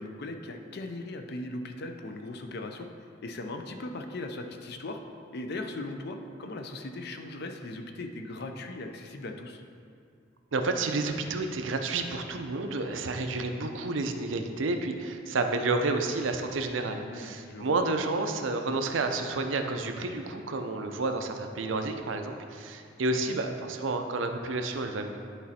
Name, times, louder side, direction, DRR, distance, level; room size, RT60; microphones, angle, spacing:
voice 1, 0.0-2.9 3.2-5.0 5.3-9.6 16.9-17.8 23.2-23.4, left 2 dB, 60° left, 6 dB, 0.5 m, -38 dB
voice 2, 10.5-25.1, right 3 dB, 85° right, 6 dB, 0.6 m, -30 dB
10.0 x 4.2 x 4.2 m, 2.3 s
head